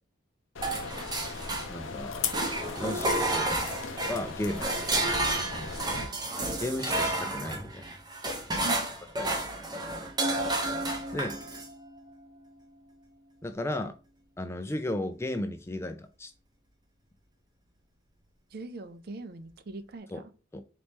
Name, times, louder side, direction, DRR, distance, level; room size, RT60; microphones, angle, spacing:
sound 1, 0.5-6.1, left 5 dB, 80° left, 0.6 m, -38 dB
sound 2, 0.6-1.9 2.3-11.7, right 2 dB, 20° right, 0.7 m, -31 dB
voice 1, 1.7-2.3 2.8-3.5 4.1-4.7 5.5-5.7 6.6-7.8 9.2-9.4 11.1-11.4 13.4-13.9 14.4-16.3 20.1-20.2 20.5-20.6, left 1 dB, 15° left, 0.3 m, -34 dB
voice 2, 18.5-20.3, right 3 dB, 50° right, 0.5 m, -41 dB
4.2 x 3.0 x 3.4 m
head